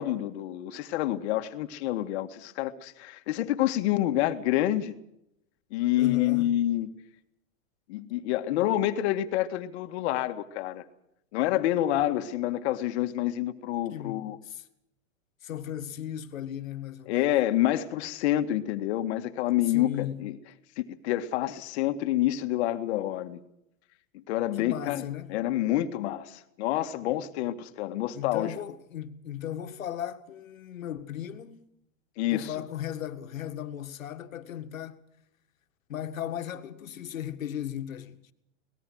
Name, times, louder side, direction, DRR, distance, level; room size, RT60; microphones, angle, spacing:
voice 1, 0.0-4.9 5.7-6.9 7.9-10.8 11.3-14.4 17.1-20.4 20.8-23.4 24.3-25.0 25.3-28.5 32.2-32.5, left 13 dB, 55° left, 1.9 m, -28 dB
voice 2, 6.0-6.5 13.9-14.6 15.4-17.3 19.7-20.2 24.6-25.3 28.1-31.7 32.3-35.0 35.9-38.2, left 10 dB, 85° left, 2.0 m, -36 dB
24.0 x 19.5 x 6.3 m
hypercardioid pair, 130°, 39 cm